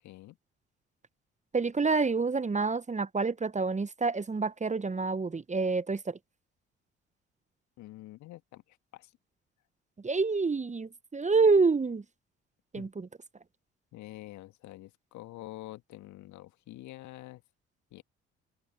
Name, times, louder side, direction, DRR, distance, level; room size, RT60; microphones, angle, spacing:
voice 1, 0.0-0.4 7.8-9.1 12.8-12.9 13.9-17.4 17.9-18.0, left 16 dB, 60° left, 1.8 m, -47 dB
voice 2, 1.5-6.2 10.0-12.0 12.7-13.1, right 4 dB, 20° right, 1.3 m, -27 dB
open air
figure-of-eight pair, 45°, 33 cm